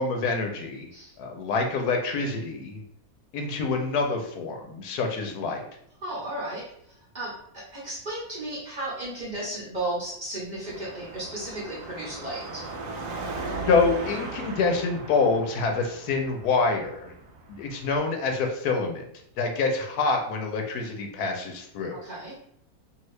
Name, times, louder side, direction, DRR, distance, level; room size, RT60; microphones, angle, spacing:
voice 1, 0.0-0.9 1.2-2.8 3.3-5.6 13.7-17.1 17.5-19.1 19.4-22.0, left 4 dB, 90° left, 3 dB, 1.2 m, -26 dB
voice 2, 6.0-12.6 21.9-22.4, right 1 dB, 35° right, -6 dB, 1.0 m, -34 dB
Car passing by / Traffic noise roadway noise / Engine, 10.7-18.0, right 3 dB, 70° right, 0.9 m, -38 dB
2.8 x 2.8 x 3.1 m, 0.71 s
omnidirectional pair, 1.6 m